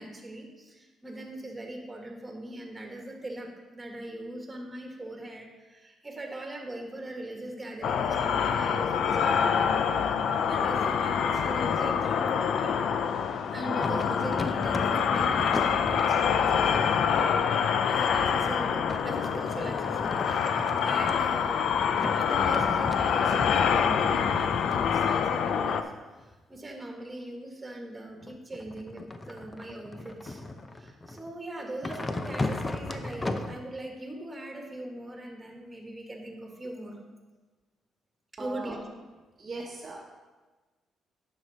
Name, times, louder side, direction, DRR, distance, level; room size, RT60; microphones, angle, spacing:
voice 1, 0.0-9.6 10.4-12.8 13.5-17.1 17.8-21.8 22.1-25.9 26.2-30.4 30.7-37.0 38.3-38.9, right 1 dB, 20° right, 2 dB, 1.8 m, -40 dB
sound 1, 7.8-25.8, left 7 dB, 70° left, 0.5 m, -26 dB
sound 2, 13.8-18.2 18.9-21.6 21.9-26.6 28.2-31.3 31.8-33.5, left 2 dB, 25° left, 0.6 m, -37 dB
voice 2, 38.4-38.8 39.4-40.0, right 3 dB, 40° right, -2 dB, 1.1 m, -39 dB
9.5 x 6.5 x 4.2 m, 1.3 s
cardioid pair, 90°, 0 cm